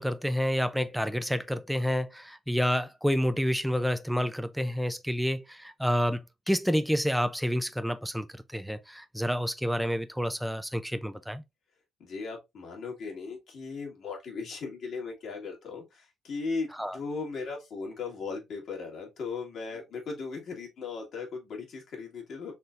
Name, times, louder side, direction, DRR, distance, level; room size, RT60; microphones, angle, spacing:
voice 1, 0.0-11.4 16.8-17.0, equal, ahead, 0.4 m, -29 dB
voice 2, 12.0-22.5, left 4 dB, 70° left, 2.0 m, -37 dB
4.2 x 3.4 x 2.5 m
cardioid pair, 90°, 0 cm